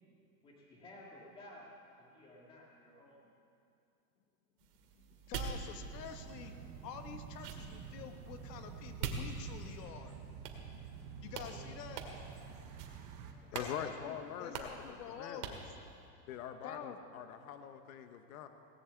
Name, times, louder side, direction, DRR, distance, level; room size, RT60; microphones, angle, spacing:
voice 1, 0.4-3.2 13.3-13.5, left 1 dB, 10° left, -3 dB, 1.8 m, -55 dB
sound 1, 4.6-9.9 10.4-11.0 11.3-11.5 11.9-12.4 12.8-13.1 13.5-13.7 14.0-14.1 14.5-14.9 15.4-15.7, right 6 dB, 75° right, 2.1 m, -44 dB
voice 2, 4.9-6.5 6.8-10.1 11.2-12.0 13.5-15.6 16.6-17.1, left 8 dB, 90° left, 7 dB, 1.5 m, -48 dB
sound 2, 5.8-13.3, right 6 dB, 25° right, 0.6 m, -49 dB
voice 3, 13.5-15.6 16.3-18.5, left 9 dB, 60° left, 8 dB, 0.9 m, -44 dB
17.5 x 7.8 x 8.1 m, 2.5 s
supercardioid pair, 180°, 48 cm